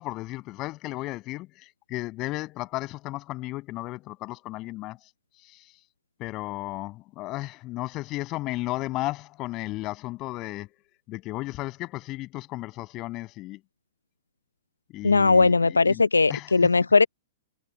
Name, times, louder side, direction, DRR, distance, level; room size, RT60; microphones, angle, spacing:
voice 1, 0.0-5.0 5.4-5.7 6.2-10.8 11.1-13.6 14.9-16.0 16.3-16.5, left 19 dB, 35° left, 6.8 m, -34 dB
voice 2, 15.0-17.1, left 4 dB, 85° left, 0.6 m, -19 dB
figure-of-eight pair, 115°, 0 cm